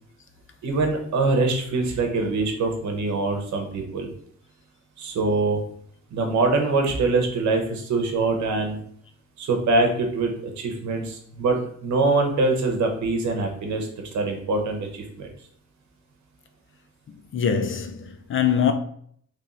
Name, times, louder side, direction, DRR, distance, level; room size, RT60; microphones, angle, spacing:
voice 1, 0.6-4.1 5.0-5.6 6.1-8.8 9.4-13.9 14.1-15.3, right 3 dB, 70° right, 1.0 m, -24 dB
voice 2, 17.3-18.7, left 7 dB, 45° left, 0.5 m, -23 dB
3.1 x 3.0 x 3.9 m
cardioid pair, 90°, 30 cm